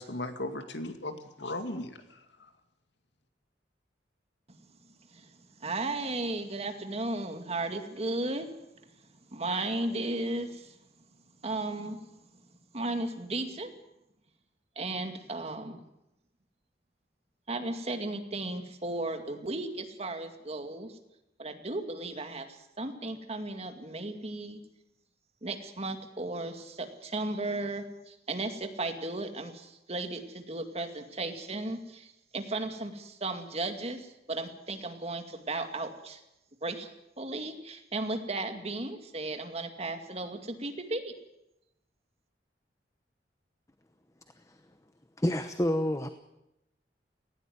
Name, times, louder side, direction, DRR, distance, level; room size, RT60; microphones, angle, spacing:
voice 1, 0.0-2.5, left 1 dB, 80° left, 7 dB, 2.3 m, -37 dB
voice 2, 5.6-8.5 9.3-10.8 11.4-12.0 12.7-13.7 14.8-15.8 17.5-20.9 21.4-24.6 25.4-36.2 36.6-36.9 37.2-41.1, right 2 dB, 35° right, 6 dB, 2.3 m, -35 dB
voice 3, 45.2-46.1, left 1 dB, 20° left, 9 dB, 0.9 m, -29 dB
18.5 x 17.0 x 9.5 m, 0.89 s
head